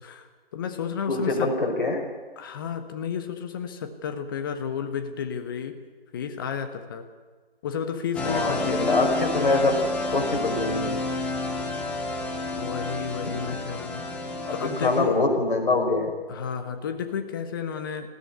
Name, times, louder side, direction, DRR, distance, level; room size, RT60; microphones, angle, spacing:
voice 1, 0.0-1.5 2.4-5.8 6.1-7.1 7.6-9.0 12.5-14.0 14.5-15.2 16.3-18.1, left 7 dB, 20° left, 8 dB, 1.3 m, -32 dB
voice 2, 1.1-2.0 8.2-11.0 13.2-13.6 14.6-16.1, left 2 dB, 55° left, 2 dB, 5.2 m, -25 dB
sound 1, 8.1-15.0, left 2 dB, 5° left, 1.1 m, -30 dB
20.5 x 15.0 x 9.4 m, 1.4 s
figure-of-eight pair, 150°, 30 cm